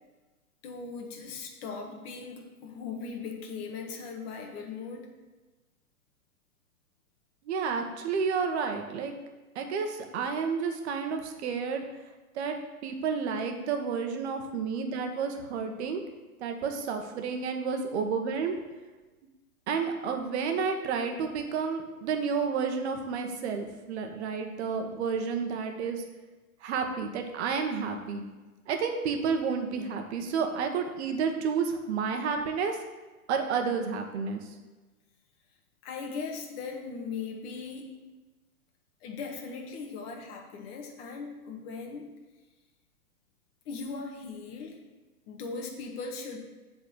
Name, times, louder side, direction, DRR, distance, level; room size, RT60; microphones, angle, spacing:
voice 1, 0.6-5.1 35.8-38.0 39.0-42.1 43.6-44.8 45.3-46.4, left 4 dB, 40° left, 1 dB, 1.6 m, -39 dB
voice 2, 7.5-9.1 9.5-11.8 12.3-12.5 12.8-16.0 16.4-18.6 19.7-26.0 26.6-28.2 28.7-32.8 33.3-34.4, right 5 dB, 50° right, 5 dB, 1.2 m, -30 dB
7.7 x 4.3 x 6.8 m, 1.2 s
hypercardioid pair, 130°, 44 cm